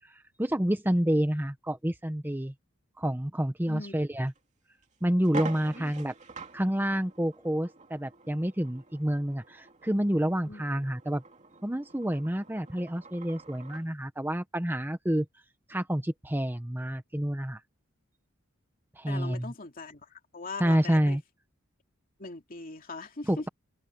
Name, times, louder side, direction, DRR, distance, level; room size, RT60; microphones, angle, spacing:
voice 1, 0.4-2.5 3.0-4.3 5.0-6.1 6.5-11.2 11.6-15.2 15.7-17.6 19.0-19.5 20.6-21.2 23.3-23.5, equal, 10° right, 0.9 m, -28 dB
sound 1, 4.3-4.4 4.8-4.9 5.2-13.9, right 3 dB, 35° right, 2.8 m, -45 dB
voice 2, 19.1-21.2 22.2-23.5, left 3 dB, 45° left, 2.6 m, -41 dB
head